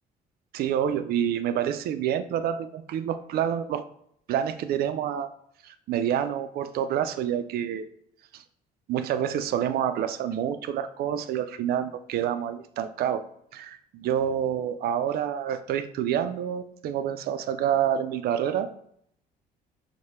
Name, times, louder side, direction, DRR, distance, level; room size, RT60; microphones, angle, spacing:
voice 1, 0.5-3.8 4.3-5.3 5.6-7.9 8.3-8.4 8.9-13.2 13.5-18.7, right 9 dB, 65° right, 11 dB, 0.4 m, -28 dB
4.9 x 2.2 x 4.2 m, 0.71 s
cardioid pair, 110°, 17 cm